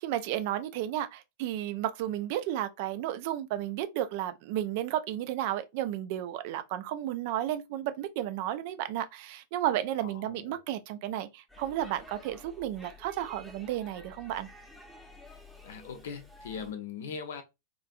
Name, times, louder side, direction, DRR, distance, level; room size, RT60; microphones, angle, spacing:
voice 1, 0.0-14.5, right 12 dB, 50° right, 0.4 m, -33 dB
voice 2, 10.0-10.6 15.6-17.4, left 6 dB, 60° left, 0.5 m, -40 dB
Speech / Shout / Subway metro underground, 11.5-16.7, left 2 dB, ahead, 0.7 m, -51 dB
3.1 x 2.5 x 2.4 m
figure-of-eight pair, 90°, 0 cm